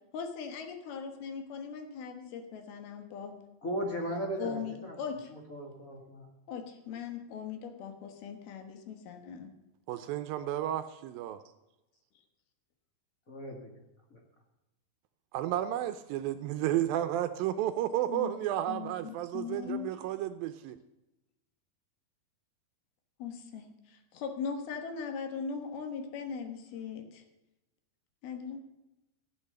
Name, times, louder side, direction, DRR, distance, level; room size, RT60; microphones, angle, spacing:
voice 1, 0.1-3.4 4.4-5.3 6.5-9.5 18.1-18.3 18.7-20.0 23.2-27.2 28.2-28.6, left 6 dB, 80° left, 6 dB, 3.2 m, -39 dB
voice 2, 3.6-4.9 5.3-6.2 13.3-13.7 14.1-14.2, equal, 35° left, 1 dB, 1.3 m, -37 dB
voice 3, 9.9-11.4 15.3-20.8, right 12 dB, 80° right, 9 dB, 2.2 m, -32 dB
13.5 x 8.8 x 6.5 m, 0.95 s
omnidirectional pair, 4.4 m